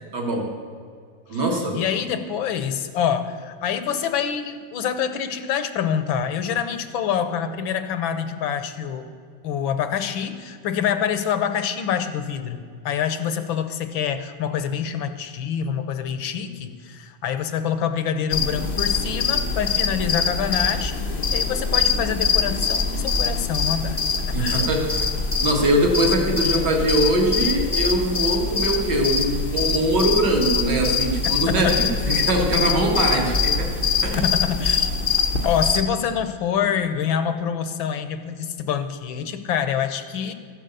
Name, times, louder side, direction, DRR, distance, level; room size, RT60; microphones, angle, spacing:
voice 1, 0.1-0.5 1.3-1.8 24.3-25.1 25.4-33.7 34.0-34.3, right 1 dB, 55° right, 1 dB, 2.4 m, -22 dB
voice 2, 1.7-9.1 9.4-21.0 21.3-24.0 24.4-24.6 34.6-35.0 35.4-40.3, left 8 dB, 70° left, 10 dB, 1.5 m, -26 dB
sound 1, 18.3-35.8, left 5 dB, 55° left, 0.6 m, -24 dB
14.0 x 7.7 x 6.8 m, 2.2 s
omnidirectional pair, 2.3 m